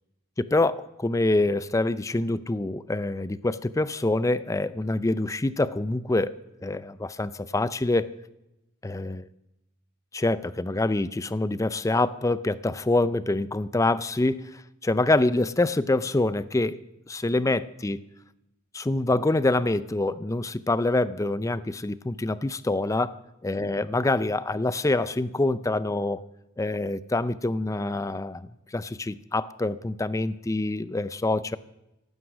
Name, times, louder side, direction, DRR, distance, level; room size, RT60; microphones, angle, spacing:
voice 1, 0.4-6.4 6.6-8.1 8.8-9.3 10.1-16.8 17.1-18.0 18.7-23.1 23.4-26.2 26.6-28.4 28.7-31.6, left 2 dB, 15° left, 16 dB, 0.4 m, -26 dB
14.5 x 12.0 x 6.2 m, 0.91 s
head